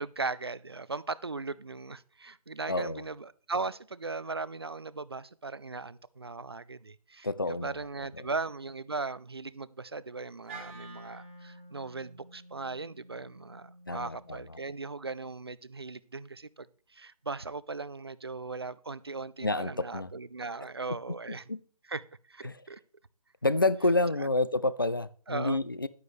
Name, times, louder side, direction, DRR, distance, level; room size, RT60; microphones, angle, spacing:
voice 1, 0.0-16.7 16.9-21.4 21.9-22.0 22.3-22.8 24.2-24.3 25.3-25.6, right 3 dB, 40° right, 0.4 m, -38 dB
voice 2, 2.7-3.0 7.2-7.8 8.1-8.2 13.9-14.6 19.4-20.1 21.3-21.6 22.4-22.6 23.4-25.9, left 2 dB, 35° left, 0.4 m, -29 dB
Wind instrument woodwind instrument, 10.5-14.7, right 2 dB, 20° right, 1.7 m, -49 dB
11.0 x 9.4 x 3.2 m
figure-of-eight pair, 175°, 20 cm